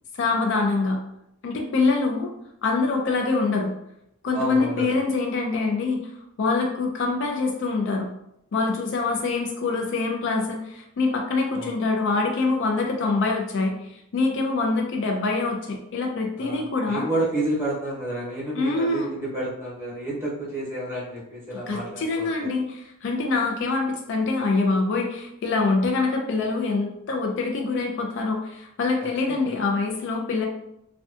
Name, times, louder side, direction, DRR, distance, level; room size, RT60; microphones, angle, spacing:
voice 1, 0.2-1.0 1.4-2.3 2.6-3.7 4.2-6.0 6.4-8.1 8.5-17.1 18.5-19.1 21.5-30.5, left 3 dB, 55° left, 2 dB, 0.4 m, -25 dB
voice 2, 4.3-5.0 11.5-11.7 16.4-22.5 29.3-29.5, right 1 dB, 10° right, -7 dB, 0.9 m, -30 dB
2.6 x 2.2 x 2.4 m, 0.78 s
head